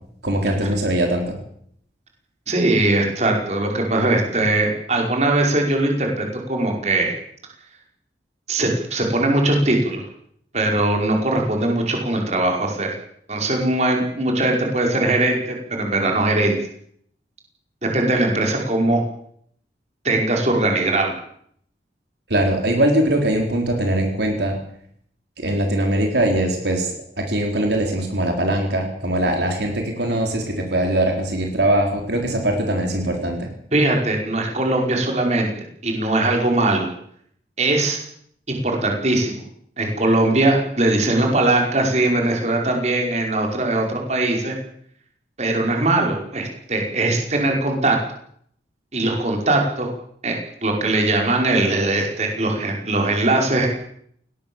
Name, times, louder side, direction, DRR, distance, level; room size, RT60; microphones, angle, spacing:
voice 1, 0.2-1.4 22.3-24.6 25.4-33.5, right 1 dB, 70° right, 2 dB, 4.1 m, -21 dB
voice 2, 2.5-7.1 8.5-10.0 10.5-12.9 13.3-16.6 17.8-19.0 20.0-21.2 33.7-35.5 35.8-36.9 37.6-38.0 38.5-39.4 39.8-44.6 45.4-48.0 48.9-49.9 50.2-50.4 50.6-53.7, right 2 dB, 40° right, 1 dB, 5.4 m, -20 dB
21.0 x 18.5 x 7.3 m, 0.66 s
head